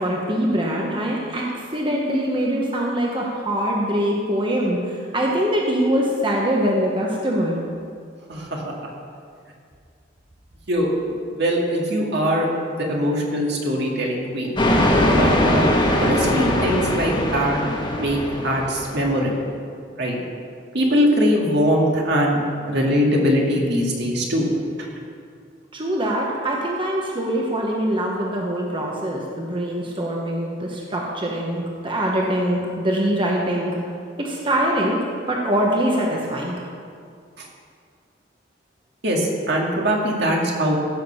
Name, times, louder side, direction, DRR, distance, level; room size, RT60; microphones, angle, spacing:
voice 1, 0.0-7.6 25.7-33.8 34.2-36.6, equal, 25° right, -2 dB, 1.1 m, -23 dB
voice 2, 8.3-8.9 10.7-10.9 11.3-12.5 12.8-14.5 15.1-15.7 16.0-17.6 18.0-19.5 20.0-20.2 20.7-22.4 22.7-24.5 24.8-24.9 37.4-37.5 39.0-40.7, equal, 65° right, -1 dB, 2.0 m, -21 dB
sound 1, 14.6-19.1, left 1 dB, 25° left, 1.3 m, -20 dB
15.0 x 6.7 x 5.6 m, 2.2 s
head